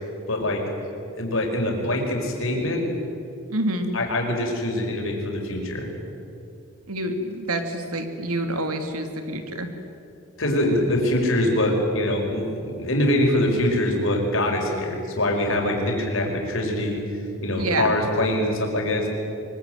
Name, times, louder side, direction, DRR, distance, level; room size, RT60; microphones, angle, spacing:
voice 1, 0.3-0.6 1.2-2.8 3.9-5.9 10.4-12.5 12.8-17.0 17.4-19.1, left 1 dB, 60° left, 1 dB, 5.4 m, -23 dB
voice 2, 3.5-3.9 6.9-9.7 17.5-17.9, right 1 dB, 80° right, 6 dB, 2.9 m, -27 dB
24.5 x 23.0 x 9.4 m, 2.7 s
head